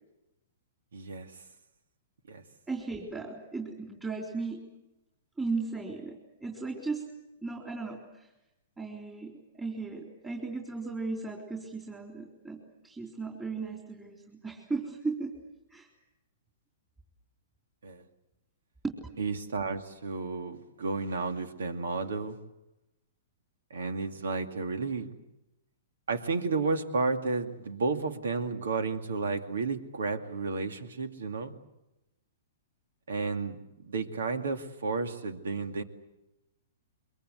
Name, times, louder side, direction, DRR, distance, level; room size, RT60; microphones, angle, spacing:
voice 1, 0.9-1.3 2.3-2.4 17.8-18.0 19.2-22.4 23.7-25.1 26.1-31.5 33.1-35.8, right 4 dB, 85° right, 7 dB, 2.4 m, -32 dB
voice 2, 2.7-4.6 5.4-7.1 7.4-8.3 8.8-15.3 15.7-15.9 18.8-18.9, right 3 dB, 10° right, -1 dB, 3.8 m, -36 dB
24.0 x 23.0 x 8.2 m, 0.92 s
hypercardioid pair, 145°, 0 cm